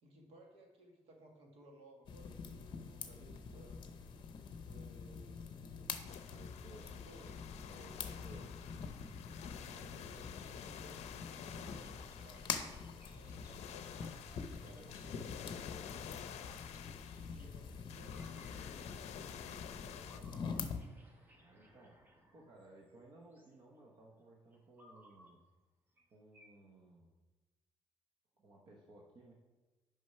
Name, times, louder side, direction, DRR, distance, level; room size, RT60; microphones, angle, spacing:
voice 1, 0.0-4.0 4.3-6.0 6.6-7.6 9.6-14.2 14.7-20.4, right 2 dB, 65° right, 2 dB, 1.5 m, -61 dB
sound 1, 2.1-20.8, left 5 dB, 45° left, 0.7 m, -46 dB
sound 2, 6.0-20.2, left 9 dB, 80° left, 0.5 m, -51 dB
voice 2, 6.3-6.9 7.6-8.6 14.2-15.2 21.4-22.0 22.3-25.4 26.1-27.1 28.4-29.3, right 2 dB, 45° right, -1 dB, 1.0 m, -59 dB
sound 3, 9.3-15.5 16.1-17.7 18.0-23.6 24.5-25.3 26.0-26.1 26.3-26.5, equal, 15° right, 1.0 m, -66 dB
6.4 x 5.2 x 5.6 m, 1.2 s
cardioid pair, 170°, 11 cm